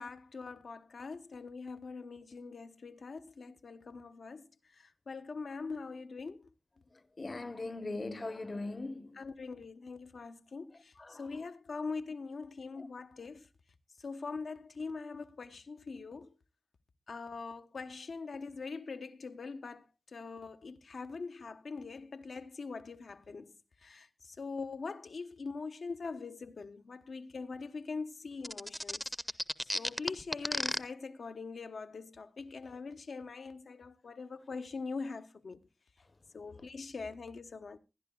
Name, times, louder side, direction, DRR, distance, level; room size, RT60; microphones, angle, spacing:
voice 1, 0.0-4.5 4.7-6.5 9.2-13.5 14.0-16.3 17.1-23.5 23.8-29.0 29.6-35.6 36.3-37.8, left 4 dB, 75° left, 1.1 m, -43 dB
voice 2, 7.2-9.2 11.0-11.3 12.8-12.9, left 2 dB, 40° left, 0.9 m, -40 dB
sound 1, 28.4-30.8, equal, 5° left, 0.7 m, -33 dB
22.0 x 11.0 x 2.3 m
wide cardioid pair, 110°, 0 cm